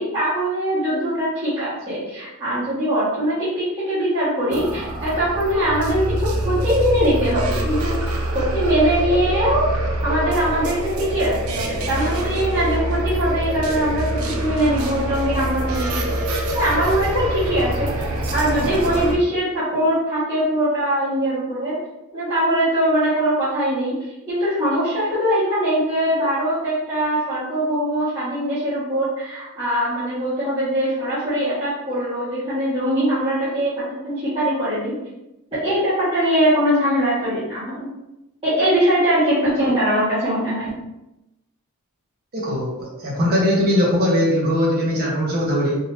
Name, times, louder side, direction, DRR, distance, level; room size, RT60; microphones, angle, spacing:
voice 1, 0.0-6.1 6.4-7.9 8.3-9.7 10.0-17.9 18.3-21.7 22.1-24.0 24.3-34.9 35.6-37.9 38.4-40.7, equal, 25° right, -15 dB, 1.4 m, -21 dB
sound 1, 4.5-19.2, right 1 dB, 90° right, 0.6 m, -25 dB
voice 2, 42.3-45.8, left 1 dB, 50° right, -4 dB, 1.1 m, -20 dB
3.9 x 2.9 x 2.6 m, 0.93 s
head